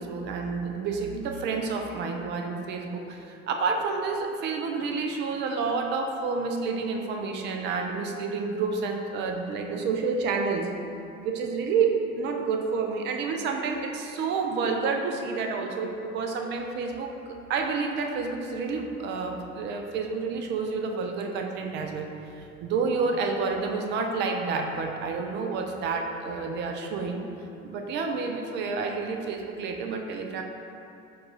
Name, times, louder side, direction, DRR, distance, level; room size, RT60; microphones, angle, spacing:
voice 1, 0.0-10.7 11.2-22.1 22.4-27.2 27.6-30.4, right 4 dB, 25° right, 3 dB, 0.3 m, -29 dB
4.7 x 2.3 x 3.8 m, 2.7 s
figure-of-eight pair, 75°, 43 cm